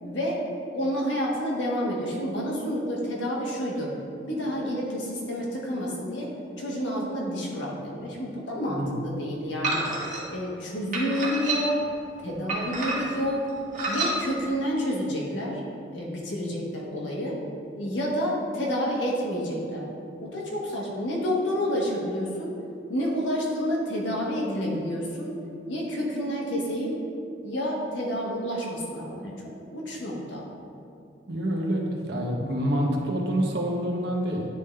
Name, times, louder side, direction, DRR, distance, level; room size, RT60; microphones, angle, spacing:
voice 1, 0.0-0.4 0.7-3.9 4.2-6.3 6.6-9.8 10.3-11.8 12.2-13.5 13.9-15.6 15.9-17.4 17.8-19.8 20.2-22.5 22.9-25.3 25.7-27.0 27.4-29.3 29.7-30.4, equal, 80° left, -3 dB, 1.3 m, -29 dB
sound 1, 9.6-10.2 10.9-11.9 12.5-13.2 13.7-14.2, right 3 dB, 45° right, 1.3 m, -29 dB
voice 2, 31.3-34.4, right 1 dB, 65° right, 0 dB, 0.9 m, -27 dB
9.9 x 3.7 x 3.2 m, 2.5 s
head